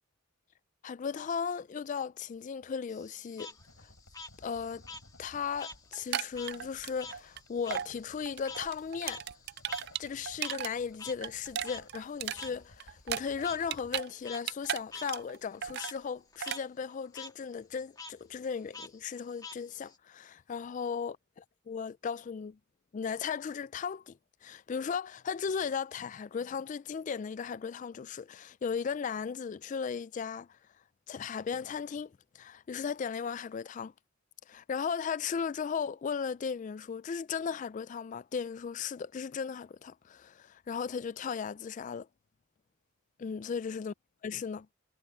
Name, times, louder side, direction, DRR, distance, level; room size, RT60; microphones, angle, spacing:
voice 1, 0.8-3.5 3.8-3.9 4.4-4.8 5.2-9.2 10.0-22.6 22.9-30.6 31.1-33.9 34.5-42.1 43.2-43.9 44.2-44.6, left 6 dB, 35° left, 0.3 m, -36 dB
Frog, 2.9-5.8 6.1-10.7 11.0-11.1 11.7-11.8 12.4-12.5 13.4-13.6 14.1-14.4 14.9-15.1 15.4-15.9 16.3-16.6 16.9-17.3 18.0-18.1 18.7-20.0, left 4 dB, 20° left, 2.3 m, -46 dB
sound 1, 3.5-14.0, left 2 dB, 85° left, 3.7 m, -59 dB
sound 2, 5.9-7.4 7.7-7.9 8.2-10.7 11.0-14.1 14.3-15.4 15.6-16.0 16.4-16.6, right 10 dB, 50° right, 0.4 m, -36 dB
head